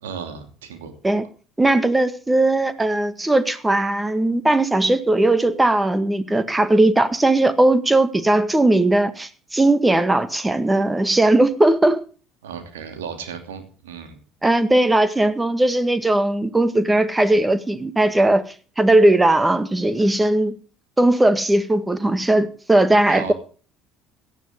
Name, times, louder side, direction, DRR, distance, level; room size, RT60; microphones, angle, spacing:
voice 1, 0.0-0.9 12.4-14.2 23.1-23.3, right 7 dB, 80° right, 2.8 m, -34 dB
voice 2, 1.6-12.0 14.4-18.4 18.8-20.6 21.0-23.3, right 2 dB, 15° right, 1.7 m, -18 dB
17.5 x 13.0 x 3.7 m
hypercardioid pair, 60°, 0 cm